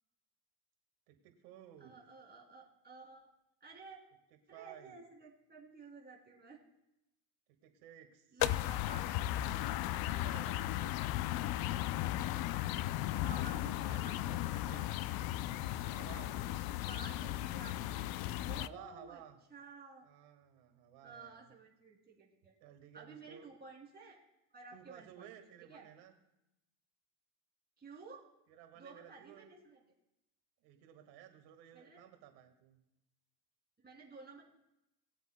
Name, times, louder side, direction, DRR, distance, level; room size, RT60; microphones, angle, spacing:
voice 1, 1.1-2.0 4.5-5.0 7.6-9.1 10.1-10.8 13.6-14.4 15.5-16.3 18.6-19.4 20.0-21.5 22.6-23.5 24.7-26.1 28.5-29.5 30.6-32.8, right 11 dB, 80° right, 5 dB, 1.8 m, -56 dB
voice 2, 1.8-3.3 3.6-4.0 4.5-6.6 8.3-9.7 13.2-14.9 16.8-17.8 18.4-19.2 19.5-20.0 21.0-22.5 22.9-24.2 24.5-25.3 25.7-25.9 27.8-28.3 28.7-29.8 31.7-32.0 33.8-34.4, right 4 dB, 20° right, -1 dB, 2.9 m, -53 dB
sound 1, 8.4-18.7, left 14 dB, 50° left, 0.4 m, -36 dB
19.0 x 8.2 x 2.2 m, 0.85 s
supercardioid pair, 115°, 49 cm